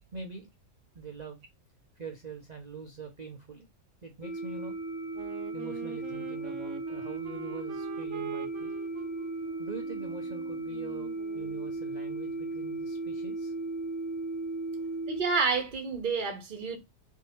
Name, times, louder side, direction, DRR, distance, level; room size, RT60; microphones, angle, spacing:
voice 1, 0.1-0.5 0.9-1.4 1.9-3.7 4.0-4.8 5.5-8.7 9.6-13.5, right 4 dB, 90° right, 0.3 m, -44 dB
sound 1, 4.2-15.2, right 2 dB, 35° left, 0.8 m, -36 dB
Wind instrument woodwind instrument, 5.1-11.7, right 8 dB, 70° right, 0.7 m, -44 dB
voice 2, 15.1-16.8, right 4 dB, 40° right, 0.9 m, -29 dB
3.4 x 2.7 x 4.2 m
omnidirectional pair, 1.7 m